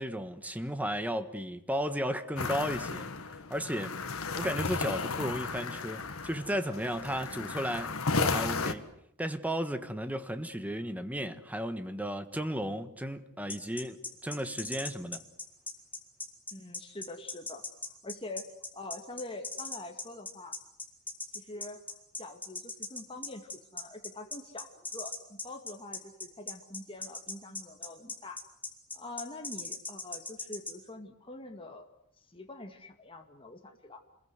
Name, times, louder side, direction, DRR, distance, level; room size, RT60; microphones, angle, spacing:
voice 1, 0.0-3.1 3.5-8.8 9.2-15.2, equal, 5° right, 1.5 m, -34 dB
sound 1, 2.4-8.7, left 4 dB, 75° left, 1.8 m, -34 dB
sound 2, 13.5-30.7, left 3 dB, 10° left, 3.5 m, -39 dB
voice 2, 16.5-17.6 18.0-18.4 18.7-20.6 21.3-21.8 22.2-28.4 28.9-31.9 32.3-34.0, left 2 dB, 25° left, 2.1 m, -45 dB
28.0 x 21.5 x 8.1 m
head